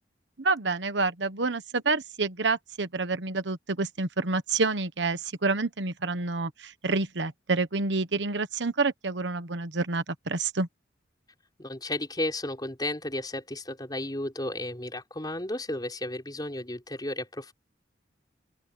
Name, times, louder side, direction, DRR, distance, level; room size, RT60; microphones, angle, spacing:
voice 1, 0.4-10.7, right 3 dB, 75° right, 1.2 m, -28 dB
voice 2, 11.6-17.5, left 1 dB, 20° left, 5.2 m, -33 dB
open air
head